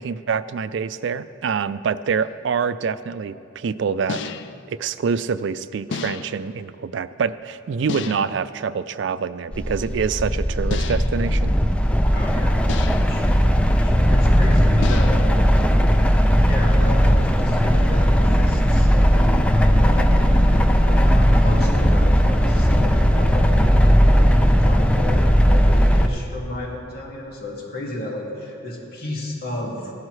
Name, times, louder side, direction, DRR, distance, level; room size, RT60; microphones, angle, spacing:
voice 1, 0.0-4.2 4.7-11.5, right 6 dB, 65° right, 15 dB, 0.4 m, -26 dB
sound 1, 2.2-2.3 4.1-4.7 5.9-6.5 7.9-8.5 10.7-11.3 12.7-13.2 14.8-15.4, left 5 dB, 65° left, 0.4 m, -31 dB
sound 2, 9.5-26.1, equal, 5° left, 0.4 m, -17 dB
voice 2, 12.1-15.4 16.4-19.2 19.7-29.9, left 1 dB, 50° left, -2 dB, 2.2 m, -33 dB
15.5 x 12.0 x 3.2 m, 2.6 s
head